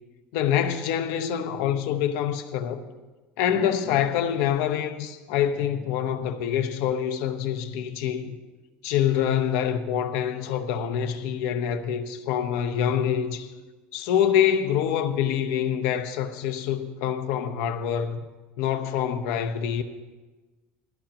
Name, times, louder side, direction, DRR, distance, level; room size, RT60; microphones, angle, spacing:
voice 1, 0.3-2.9 3.4-8.4 8.8-13.5 13.9-18.2 18.6-19.8, left 9 dB, 70° left, 1.0 m, -26 dB
18.5 x 14.5 x 3.0 m
cardioid pair, 145°, 5 cm